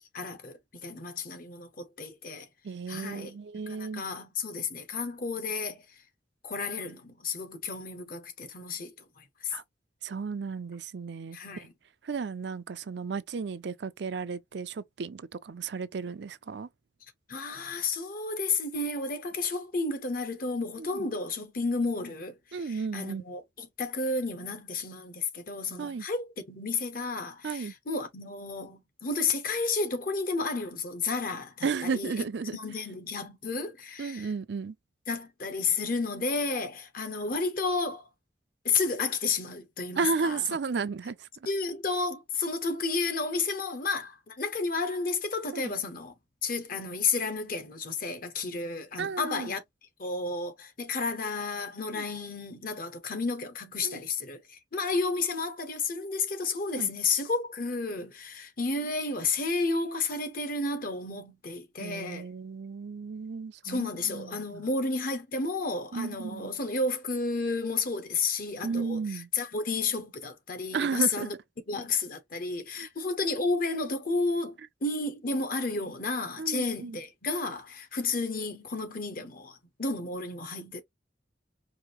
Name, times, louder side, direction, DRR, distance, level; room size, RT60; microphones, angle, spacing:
voice 1, 0.1-2.5 2.9-3.4 3.7-5.8 6.4-9.5 11.3-11.7 17.3-32.2 32.5-34.3 35.1-38.1 38.6-40.6 41.5-46.1 46.4-49.6 50.0-62.3 63.6-71.3 71.7-80.8, left 3 dB, 50° left, 1.1 m, -32 dB
voice 2, 2.6-4.0 9.5-9.6 10.0-11.4 12.0-16.7 20.8-21.1 22.5-23.2 25.8-26.1 27.4-27.7 31.6-32.6 34.0-34.8 40.0-41.3 45.5-45.7 49.0-49.5 51.9-52.0 53.8-54.0 56.8-56.9 61.8-64.6 65.9-66.5 68.6-69.3 70.7-71.3 72.8-72.9 76.4-77.0, right 5 dB, 65° right, 0.5 m, -33 dB
4.8 x 2.7 x 3.0 m
head